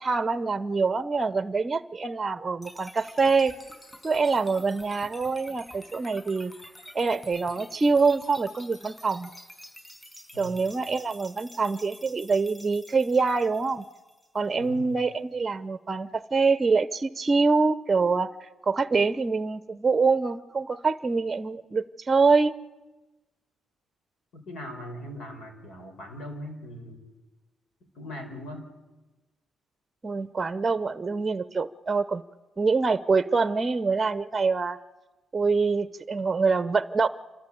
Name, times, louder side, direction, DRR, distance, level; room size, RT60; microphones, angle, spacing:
voice 1, 0.0-3.5 4.0-6.5 6.9-9.3 10.4-13.9 14.3-18.3 18.6-22.5 30.0-32.2 32.6-34.8 35.3-37.1, right 4 dB, 25° right, 13 dB, 0.7 m, -25 dB
sound 1, 2.6-14.6, equal, 10° left, 5.6 m, -48 dB
voice 2, 14.5-15.0 24.3-27.0 27.8-28.7, equal, 75° left, 5 dB, 4.7 m, -40 dB
28.0 x 13.0 x 8.6 m, 1.1 s
cardioid pair, 90°, 0 cm